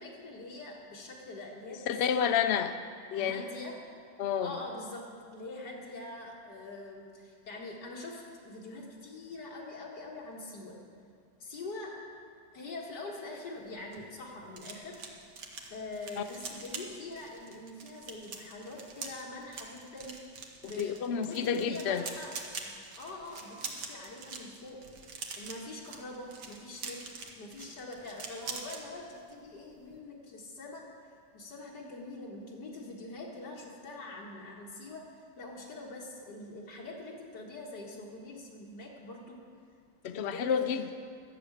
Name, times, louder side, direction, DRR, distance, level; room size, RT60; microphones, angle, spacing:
voice 1, 0.0-2.4 3.1-3.8 4.4-5.0 5.3-10.8 11.4-11.9 12.5-15.0 15.7-20.2 20.6-22.3 22.6-24.8 25.4-27.0 27.4-30.8 31.3-35.0 35.4-39.4 40.1-40.6, left 2 dB, 85° left, -4 dB, 2.2 m, -44 dB
voice 2, 1.9-2.7 3.1-3.5 4.2-4.6 16.2-16.3 20.6-22.1 40.0-40.9, left 7 dB, 60° left, 9 dB, 0.7 m, -30 dB
sound 1, 13.6-28.8 29.2-29.4 29.7-30.0, right 4 dB, 85° right, 1.9 m, -44 dB
13.0 x 6.9 x 8.6 m, 2.2 s
omnidirectional pair, 1.8 m